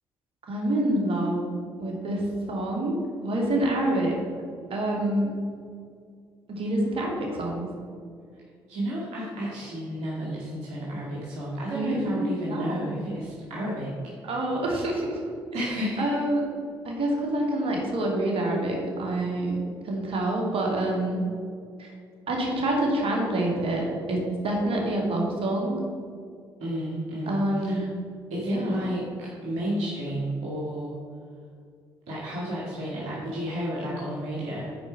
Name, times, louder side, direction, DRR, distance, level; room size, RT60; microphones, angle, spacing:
voice 1, 0.5-1.5 1.8-3.0 3.2-4.2 4.7-5.3 6.5-7.7 11.7-13.0 14.2-15.2 15.6-15.7 16.0-16.4 16.8-19.6 19.8-21.2 21.8-21.9 22.3-25.8 27.3-27.8 28.4-28.8, right 1 dB, 55° right, -1 dB, 2.5 m, -27 dB
voice 2, 8.7-13.9 15.5-16.2 26.6-27.9 28.3-30.9 32.1-34.7, equal, 75° right, -6 dB, 2.0 m, -32 dB
10.5 x 4.8 x 5.8 m, 2.3 s
hypercardioid pair, 50°, 11 cm